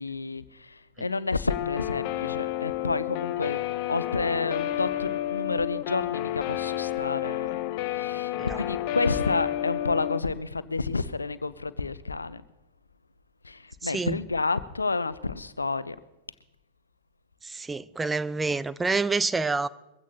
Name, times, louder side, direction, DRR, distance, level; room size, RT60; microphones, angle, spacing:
voice 1, 0.0-3.6 3.9-12.4 13.4-16.0, left 3 dB, 80° left, 0.6 m, -30 dB
Guitar, 1.5-10.2, left 13 dB, 45° left, 0.8 m, -30 dB
voice 2, 13.8-14.2 17.4-19.7, right 3 dB, 10° right, 0.5 m, -28 dB
22.5 x 15.5 x 2.8 m
figure-of-eight pair, 90°, 0 cm